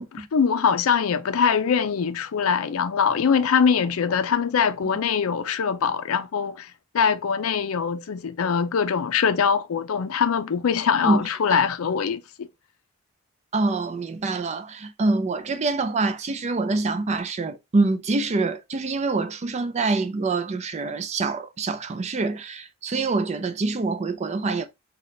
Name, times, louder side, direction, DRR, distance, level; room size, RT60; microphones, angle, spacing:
voice 1, 0.0-12.5, left 6 dB, 75° left, 0.4 m, -23 dB
voice 2, 13.5-24.7, right 3 dB, 30° right, 0.4 m, -25 dB
3.9 x 2.3 x 3.1 m
head